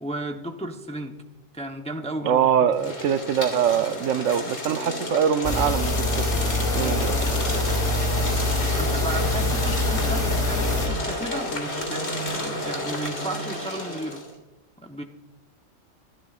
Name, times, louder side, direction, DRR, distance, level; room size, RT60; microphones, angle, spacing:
voice 1, 0.0-1.2 1.5-2.9 8.7-14.2 14.8-15.0, right 1 dB, 5° left, 4 dB, 0.5 m, -34 dB
voice 2, 2.2-7.2, right 8 dB, 80° right, 12 dB, 1.0 m, -23 dB
sound 1, 2.7-14.3, left 1 dB, 75° left, 2.7 m, -31 dB
sound 2, 5.4-10.9, left 2 dB, 35° left, 1.6 m, -25 dB
sound 3, 7.6-13.1, right 1 dB, 35° right, 5.2 m, -49 dB
22.0 x 12.5 x 2.4 m, 1.0 s
omnidirectional pair, 1.3 m